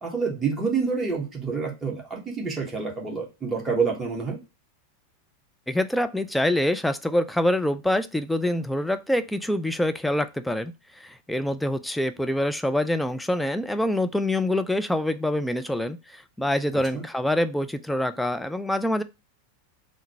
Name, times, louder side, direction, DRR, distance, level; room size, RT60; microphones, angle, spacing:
voice 1, 0.0-4.4 16.9-17.0, right 5 dB, 15° right, 1.3 m, -27 dB
voice 2, 5.7-19.0, left 1 dB, 5° left, 0.3 m, -25 dB
3.8 x 2.1 x 4.3 m
figure-of-eight pair, 90°, 0 cm